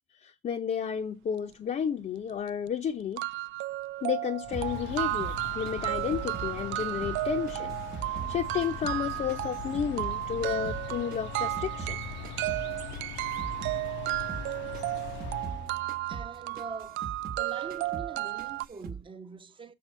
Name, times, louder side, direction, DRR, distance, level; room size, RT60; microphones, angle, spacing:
voice 1, 0.2-3.2 4.0-7.8 8.1-12.0, left 8 dB, 40° left, 0.7 m, -32 dB
sound 1, 2.2-2.3 2.7-2.8 3.2-18.7, right 17 dB, 80° right, 0.4 m, -34 dB
sound 2, 4.4-15.8, left 8 dB, 70° left, 0.8 m, -41 dB
sound 3, 4.5-7.2 7.5-10.2 10.4-13.8 14.1-14.5 14.7-17.4 17.7-18.1 18.4-19.0, right 6 dB, 50° right, 1.1 m, -42 dB
voice 2, 16.1-17.0 17.3-19.7, right 4 dB, 25° right, 0.9 m, -43 dB
7.6 x 4.9 x 5.3 m
cardioid pair, 140°, 19 cm